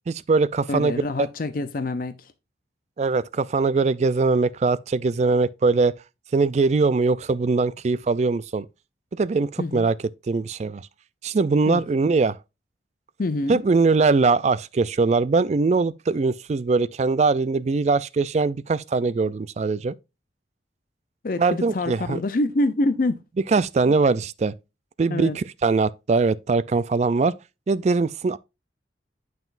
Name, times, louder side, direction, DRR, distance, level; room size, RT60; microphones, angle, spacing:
voice 1, 0.1-1.3 3.0-5.9 6.3-8.7 9.2-10.0 10.3-10.9 11.2-12.4 13.5-19.9 21.4-22.2 23.5-24.5 25.0-27.3 27.7-28.4, right 4 dB, 35° right, 0.3 m, -21 dB
voice 2, 0.7-2.3 9.6-9.9 11.7-11.8 13.2-13.6 21.2-23.2 25.1-25.4, left 2 dB, 50° left, 0.5 m, -26 dB
9.1 x 5.9 x 2.5 m
head